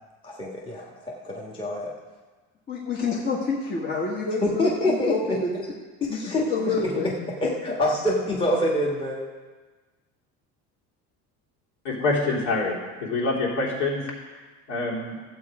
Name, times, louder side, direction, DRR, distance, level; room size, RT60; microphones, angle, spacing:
voice 1, 0.2-1.9 4.4-5.4 6.0-6.9 7.4-9.3, left 1 dB, 15° left, -3 dB, 1.4 m, -26 dB
voice 2, 2.7-5.6 6.5-7.1, left 4 dB, 35° left, -4 dB, 1.5 m, -28 dB
voice 3, 11.8-12.7 13.0-14.0 14.7-15.1, left 3 dB, 70° left, -4 dB, 3.2 m, -25 dB
14.0 x 8.0 x 4.8 m, 1.3 s
cardioid pair, 160°, 31 cm